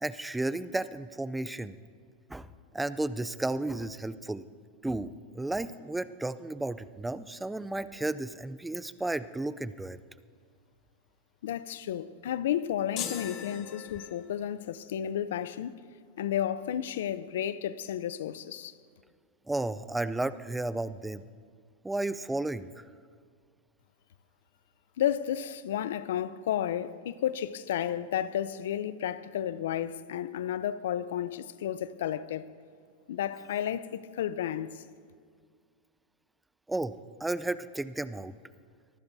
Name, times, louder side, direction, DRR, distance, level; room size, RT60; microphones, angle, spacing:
voice 1, 0.0-1.8 2.3-2.5 2.7-4.4 4.8-10.0 19.5-21.2 21.8-22.8 36.7-38.3, right 2 dB, 5° right, 0.4 m, -33 dB
voice 2, 11.4-15.7 16.2-18.7 25.0-32.5 33.1-34.8, left 10 dB, 80° left, 0.5 m, -32 dB
sound 1, 13.0-14.5, left 9 dB, 45° left, 1.4 m, -39 dB
24.0 x 15.0 x 2.7 m
supercardioid pair, 130°, 0 cm